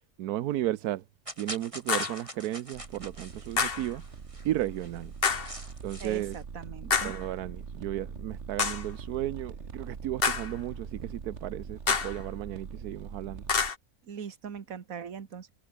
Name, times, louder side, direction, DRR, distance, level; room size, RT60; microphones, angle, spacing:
voice 1, 0.2-1.0 1.4-4.0 4.4-5.1 5.8-6.4 7.0-13.4, right 13 dB, 85° right, 1.2 m, -34 dB
sound 1, 1.3-6.4, right 1 dB, 20° right, 7.2 m, -44 dB
sound 2, 1.9-2.2 3.6-3.9 5.2-5.6 6.9-7.3 8.6-8.9 10.2-10.6 11.9-12.2 13.5-13.7, left 5 dB, 40° left, 1.5 m, -28 dB
sound 3, 2.7-13.7, right 5 dB, 50° right, 1.8 m, -42 dB
voice 2, 6.0-7.1 14.0-15.5, right 7 dB, 65° right, 1.9 m, -40 dB
omnidirectional pair, 1.6 m